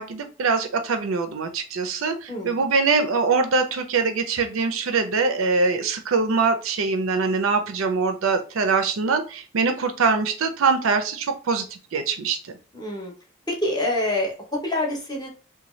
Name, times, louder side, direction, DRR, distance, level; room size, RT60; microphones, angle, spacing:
voice 1, 0.0-11.6 11.9-12.4, right 4 dB, 80° right, 7 dB, 0.5 m, -23 dB
voice 2, 2.3-2.6 12.7-13.1 13.5-15.3, left 1 dB, 20° left, 0 dB, 0.7 m, -26 dB
2.7 x 2.2 x 3.0 m, 0.35 s
head